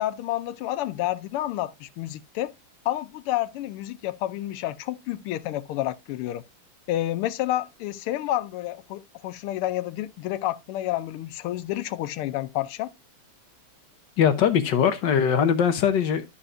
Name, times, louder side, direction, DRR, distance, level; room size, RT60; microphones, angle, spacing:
voice 1, 0.0-2.5 2.8-6.4 6.9-12.9, left 14 dB, 85° left, 1.5 m, -29 dB
voice 2, 14.2-16.2, left 8 dB, 65° left, 1.4 m, -21 dB
12.5 x 5.7 x 2.5 m
omnidirectional pair, 2.4 m